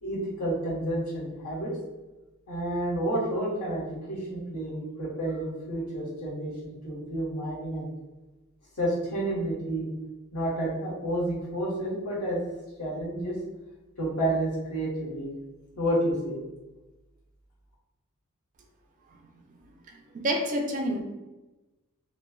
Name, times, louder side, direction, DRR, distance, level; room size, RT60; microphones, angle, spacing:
voice 1, 0.0-1.7 2.5-7.9 8.8-9.9 10.3-12.4 12.8-13.4 14.0-15.3 15.8-16.4, right 1 dB, 80° left, -6 dB, 1.2 m, -30 dB
voice 2, 19.9-21.0, equal, 35° right, 3 dB, 0.3 m, -29 dB
3.1 x 2.2 x 2.2 m, 1.1 s
head